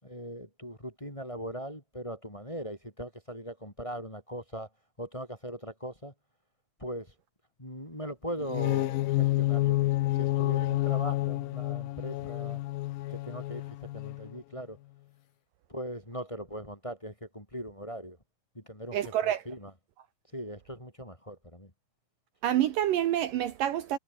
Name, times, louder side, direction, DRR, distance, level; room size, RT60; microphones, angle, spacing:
voice 1, 0.0-4.7 5.0-6.1 6.8-7.1 7.6-12.6 13.1-14.8 15.7-18.2 18.5-19.7 20.3-21.7, equal, 10° left, 3.8 m, -40 dB
sound 1, 8.4-14.3, left 17 dB, 75° left, 2.4 m, -29 dB
voice 2, 18.9-19.4 22.4-24.0, right 11 dB, 70° right, 2.6 m, -27 dB
omnidirectional pair, 4.4 m